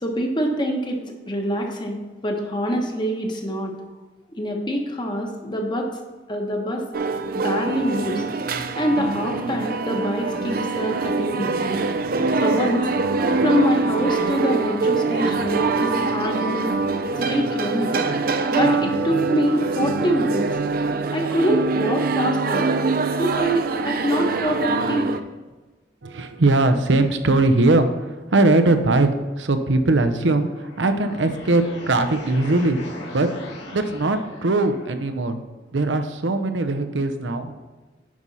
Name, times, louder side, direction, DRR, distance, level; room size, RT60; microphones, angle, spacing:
voice 1, 0.0-1.0 1.3-3.7 4.4-6.0 6.3-6.9 7.3-8.2 8.8-11.9 12.4-16.8 17.2-18.1 18.5-20.6 21.1-22.7 23.2-25.1, equal, 25° left, 2 dB, 1.1 m, -25 dB
sound 1, 6.9-25.2, right 3 dB, 50° right, 0.5 m, -24 dB
voice 2, 26.0-29.1 29.4-32.8 33.1-33.3 33.7-35.4 35.7-37.5, right 2 dB, 90° right, 8 dB, 0.8 m, -20 dB
sound 2, 30.3-35.2, left 1 dB, 75° left, 2.2 m, -40 dB
9.6 x 5.6 x 4.1 m, 1.2 s
head